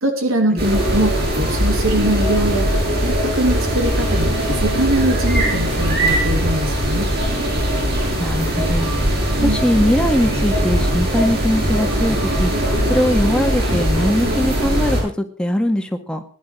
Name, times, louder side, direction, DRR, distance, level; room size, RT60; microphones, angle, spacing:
voice 1, 0.0-7.1 9.4-9.6, right 1 dB, 75° right, 3 dB, 2.8 m, -22 dB
sound 1, 0.6-15.0, equal, 50° right, 7.7 m, -20 dB
voice 2, 8.2-8.9 9.4-12.5 12.9-16.2, equal, 5° left, 4 dB, 1.7 m, -21 dB
20.5 x 11.0 x 3.3 m, 0.43 s
head